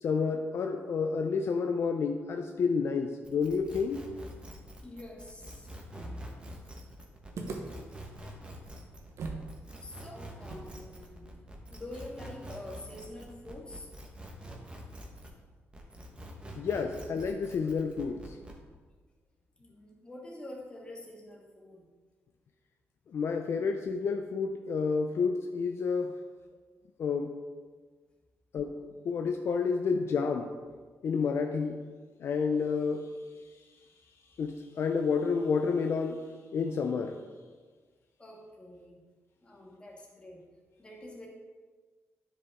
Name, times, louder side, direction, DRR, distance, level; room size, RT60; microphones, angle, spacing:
voice 1, 0.0-4.0 16.6-18.3 23.1-26.1 27.0-27.3 28.5-30.5 31.0-31.8 32.2-33.1 34.4-36.2 36.5-37.2, left 5 dB, 60° left, 5 dB, 0.5 m, -30 dB
sound 1, 3.2-15.4 15.7-18.6, right 1 dB, 20° right, 1.2 m, -46 dB
voice 2, 4.8-6.3 7.8-7.9 9.8-13.9 19.6-21.8 38.2-39.0 39.4-40.5 40.8-41.3, left 1 dB, 20° left, -1 dB, 1.6 m, -46 dB
sound 2, 7.3-9.5 9.8-9.9 10.4-13.6, right 4 dB, 70° right, 1.0 m, -44 dB
9.8 x 5.2 x 3.6 m, 1.5 s
cardioid pair, 95°, 5 cm